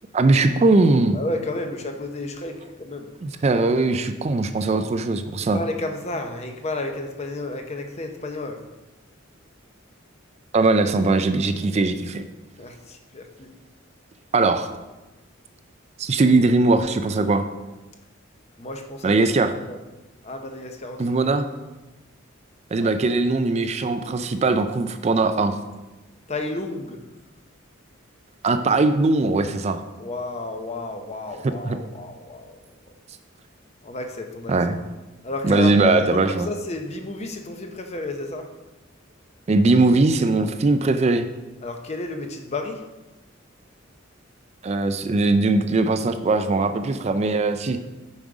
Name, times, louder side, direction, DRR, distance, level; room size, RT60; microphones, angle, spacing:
voice 1, 0.1-1.2 3.2-5.6 10.5-12.2 14.3-14.7 16.0-17.5 19.0-19.5 21.0-21.4 22.7-25.6 28.4-29.8 31.4-31.8 34.5-34.8 35.4-36.5 39.5-41.3 44.6-47.8, right 3 dB, 30° right, 9 dB, 0.4 m, -20 dB
voice 2, 1.1-3.1 5.5-8.6 12.6-13.5 18.6-19.1 19.6-19.8 20.2-21.1 22.8-22.9 26.3-27.0 30.0-32.6 33.8-34.5 35.2-38.5 41.6-42.9, left 2 dB, 35° left, 5 dB, 0.7 m, -32 dB
7.2 x 5.3 x 4.8 m, 1.1 s
head